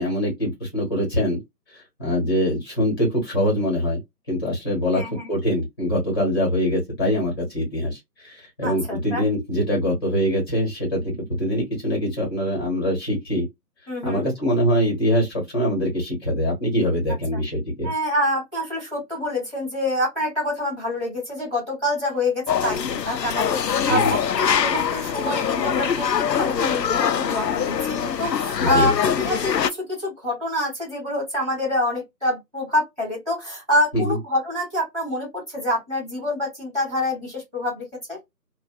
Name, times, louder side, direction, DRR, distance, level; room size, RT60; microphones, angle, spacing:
voice 1, 0.0-1.4 2.0-4.0 4.3-5.0 5.3-13.5 14.0-17.9 23.9-24.1 28.6-28.9 33.9-34.2, equal, 15° left, 1.5 m, -23 dB
voice 2, 4.9-5.3 8.6-9.2 13.9-14.3 17.8-38.2, left 1 dB, ahead, 1.3 m, -26 dB
sound 1, 22.5-29.7, left 8 dB, 75° left, 0.6 m, -23 dB
3.4 x 2.5 x 2.2 m
figure-of-eight pair, 165°, 50 cm